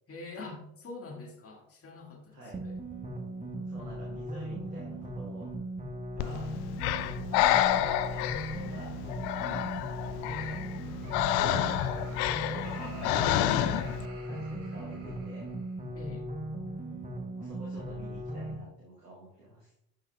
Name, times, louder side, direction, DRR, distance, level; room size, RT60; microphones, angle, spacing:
voice 1, 0.1-2.8 3.5-4.1 16.0-16.3, left 3 dB, 30° left, 1 dB, 1.6 m, -45 dB
voice 2, 2.3-2.6 3.6-5.5 6.1-6.5 6.8-9.3 9.8-10.6 11.4-11.8 12.1-15.5 17.3-19.7, right 1 dB, 90° right, -4 dB, 1.1 m, -48 dB
sound 1, 2.5-18.5, right 1 dB, 15° right, 1.4 m, -38 dB
Breathing, 6.2-14.1, left 12 dB, 60° left, 0.6 m, -29 dB
Laughter, 10.5-15.8, right 3 dB, 45° right, 2.4 m, -49 dB
11.0 x 5.1 x 2.2 m, 0.78 s
figure-of-eight pair, 50°, 45 cm